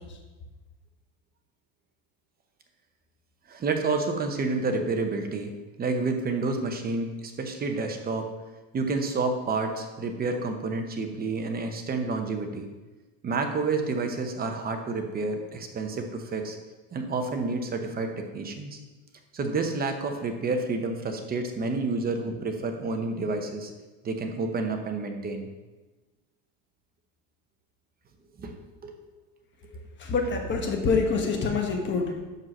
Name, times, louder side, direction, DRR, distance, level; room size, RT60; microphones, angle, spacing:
voice 1, 3.5-8.3 8.7-12.7 13.2-16.6 16.9-18.8 19.3-23.7 24.0-25.5 28.4-28.6 28.8-28.9, right 3 dB, 25° right, 5 dB, 0.8 m, -29 dB
voice 2, 30.1-32.1, left 4 dB, 30° left, 2 dB, 1.2 m, -25 dB
5.6 x 5.4 x 6.1 m, 1.2 s
cardioid pair, 145°, 40 cm